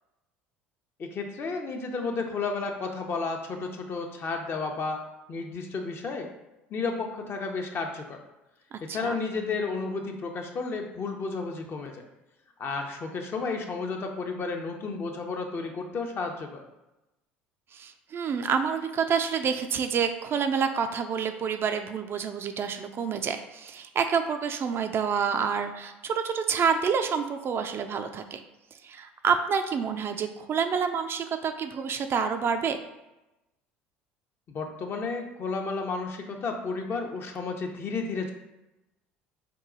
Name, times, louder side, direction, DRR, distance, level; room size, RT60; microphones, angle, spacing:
voice 1, 1.0-5.0 5.3-6.3 6.7-8.2 8.8-12.1 12.6-16.6 34.5-38.3, left 4 dB, 40° left, 3 dB, 0.7 m, -32 dB
voice 2, 8.7-9.2 17.7-28.4 28.8-32.8, right 6 dB, 40° right, 7 dB, 0.4 m, -28 dB
4.6 x 2.3 x 3.8 m, 0.97 s
hypercardioid pair, 65°, 6 cm